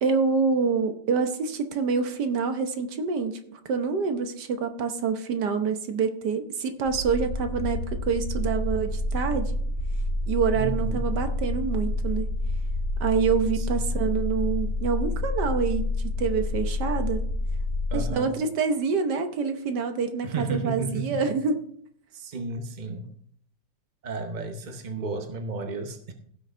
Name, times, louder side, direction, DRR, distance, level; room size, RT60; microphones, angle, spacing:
voice 1, 0.0-9.5 10.3-12.3 13.0-15.8 16.2-17.2 17.9-21.6, right 5 dB, 65° right, 7 dB, 1.5 m, -26 dB
sound 1, 6.8-18.1, left 2 dB, 55° left, 5.0 m, -28 dB
voice 2, 10.5-11.0 13.5-13.9 17.9-18.3 20.2-21.3 22.1-23.1 24.0-26.1, right 3 dB, 50° right, 6 dB, 0.5 m, -33 dB
16.0 x 6.3 x 3.3 m, 0.64 s
omnidirectional pair, 2.0 m